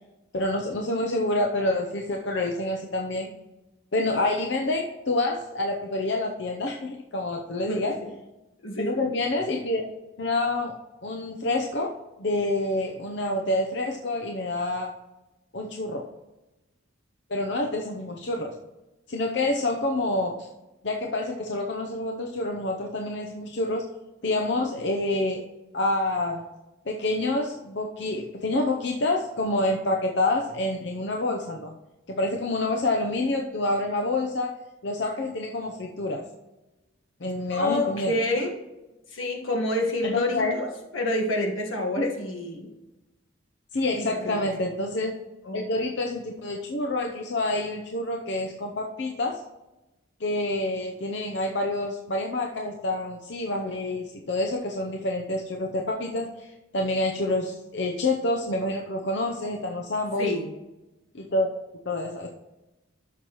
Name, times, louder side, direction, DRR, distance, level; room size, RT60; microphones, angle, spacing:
voice 1, 0.3-3.3 3.9-7.9 8.8-9.8 10.2-10.7 11.0-11.9 12.2-14.9 15.5-16.0 17.3-18.5 19.1-20.5 20.8-23.8 24.2-25.4 25.7-26.5 26.9-31.7 32.1-36.2 37.2-38.1 40.1-40.5 43.7-45.2 45.5-49.4 50.2-56.5 56.7-60.3 61.1-61.5 61.9-62.3, left 2 dB, 60° left, 2 dB, 0.7 m, -27 dB
voice 2, 7.7-8.1 8.6-9.1 37.5-38.5 39.1-42.7 44.0-44.4 45.4-45.7 60.2-60.5, left 1 dB, 85° left, 2 dB, 1.5 m, -28 dB
13.0 x 5.9 x 3.0 m, 1.0 s
head